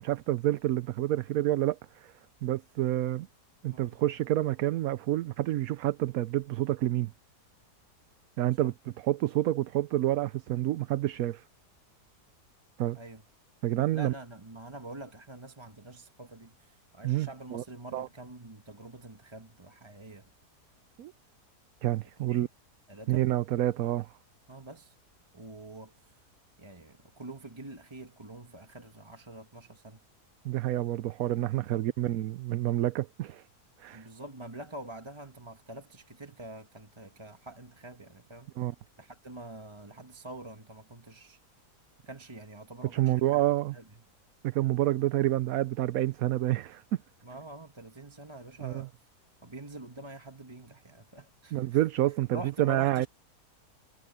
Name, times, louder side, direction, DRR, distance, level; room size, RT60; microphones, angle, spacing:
voice 1, 0.0-2.1 2.4-3.3 3.6-7.1 8.4-11.4 12.8-13.0 13.6-14.1 17.0-17.6 17.9-18.1 21.0-21.1 21.8-22.5 23.1-24.1 30.4-33.4 33.8-34.1 38.6-38.7 42.9-43.7 44.4-46.8 48.6-48.9 51.5-53.1, right 14 dB, 70° right, 1.0 m, -28 dB
voice 2, 3.7-4.0 8.6-8.7 13.0-13.2 13.9-20.3 22.2-22.5 22.9-23.3 24.5-24.9 25.3-26.2 26.6-30.0 31.7-31.8 33.9-38.5 39.0-41.4 42.0-43.4 43.7-43.8 47.2-48.9 49.4-51.8 52.3-53.1, right 2 dB, 20° right, 1.3 m, -46 dB
omnidirectional pair, 1.7 m